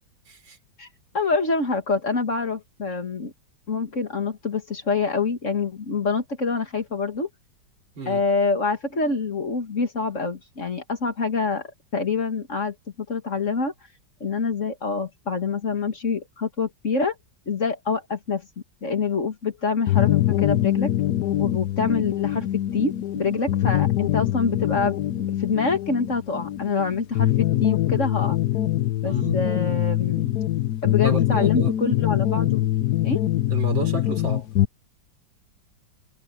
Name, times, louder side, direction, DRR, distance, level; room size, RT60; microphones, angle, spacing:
voice 1, 0.3-0.6 8.0-8.2 29.0-29.4 31.0-31.7 33.5-34.5, right 3 dB, 80° right, 4.5 m, -31 dB
voice 2, 1.1-3.3 3.7-7.3 8.1-12.8 13.1-13.7 14.2-17.2 17.5-18.5 18.8-20.9 21.4-28.4 29.0-30.4 30.8-32.7 33.0-33.2, left 4 dB, 40° left, 2.2 m, -26 dB
sound 1, 19.9-34.7, left 13 dB, 65° left, 1.2 m, -23 dB
omnidirectional pair, 2.1 m